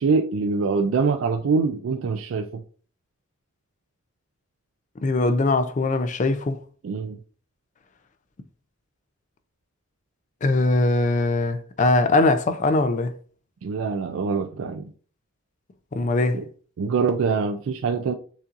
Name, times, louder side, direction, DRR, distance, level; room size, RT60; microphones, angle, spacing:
voice 1, 0.0-2.6 6.8-7.2 13.6-14.9 16.3-16.4 16.8-18.1, right 5 dB, 80° right, 0.3 m, -24 dB
voice 2, 5.0-6.6 10.4-13.1 15.9-16.4, left 2 dB, 40° left, 0.4 m, -21 dB
7.0 x 2.6 x 2.5 m
head